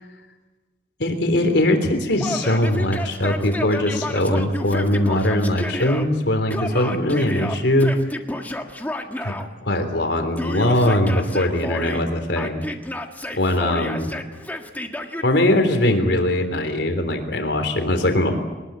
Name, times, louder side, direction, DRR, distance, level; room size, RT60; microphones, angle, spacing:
voice 1, 1.0-8.0 9.2-9.3 9.6-12.7 13.3-14.1 15.2-18.3, left 1 dB, 75° left, 5 dB, 3.5 m, -21 dB
Yell, 2.2-6.0 6.5-9.5 10.4-12.1 12.4-15.3, left 1 dB, 10° left, 1.7 m, -30 dB
23.5 x 20.5 x 9.1 m, 1.2 s
head